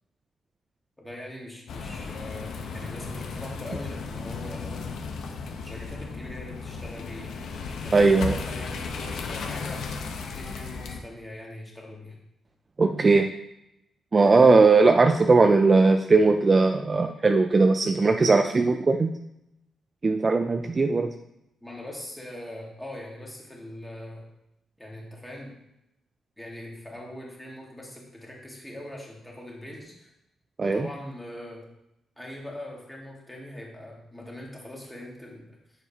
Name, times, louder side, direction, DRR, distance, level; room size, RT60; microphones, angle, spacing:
voice 1, 1.0-4.9 5.5-7.4 7.8-9.9 10.3-12.2 21.6-24.3 24.8-25.5 26.4-30.1 30.6-31.6 32.2-35.6, left 1 dB, 5° left, -2 dB, 1.7 m, -41 dB
sound 1, 1.7-11.0, left 4 dB, 75° left, 0.8 m, -35 dB
voice 2, 7.9-8.4 12.8-13.3 14.1-19.2 20.0-21.1 30.6-30.9, right 3 dB, 25° right, 6 dB, 0.3 m, -19 dB
7.2 x 6.6 x 2.8 m, 0.86 s
wide cardioid pair, 145°, 0 cm